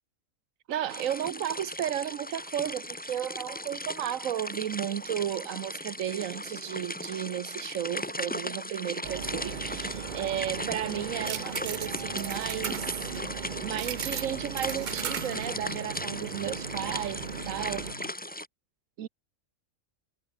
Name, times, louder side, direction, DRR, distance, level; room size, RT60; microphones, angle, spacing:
voice 1, 0.7-13.1 13.6-18.1 19.0-19.1, right 10 dB, 75° right, 1.2 m, -34 dB
sound 1, 0.9-18.5, left 1 dB, 5° left, 1.5 m, -37 dB
sound 2, 9.0-17.9, right 9 dB, 50° right, 0.6 m, -37 dB
sound 3, 9.2-18.1, left 2 dB, 50° left, 5.9 m, -46 dB
omnidirectional pair, 1.4 m